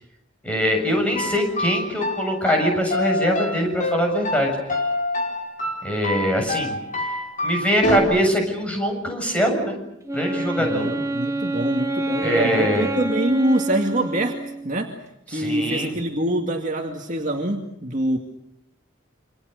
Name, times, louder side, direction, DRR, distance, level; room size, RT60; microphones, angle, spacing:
voice 1, 0.4-4.5 5.8-6.8 7.0-7.2 7.4-9.8 10.1-10.9 12.2-12.9 15.3-15.9, equal, 5° left, 2 dB, 7.2 m, -23 dB
sound 1, 1.2-8.0, left 1 dB, 40° left, 4.7 m, -27 dB
Wind instrument woodwind instrument, 10.1-14.9, right 2 dB, 15° right, 1.4 m, -28 dB
voice 2, 10.6-14.9 15.3-18.2, right 1 dB, 40° right, 2 dB, 2.3 m, -25 dB
28.5 x 26.0 x 6.7 m, 0.80 s
head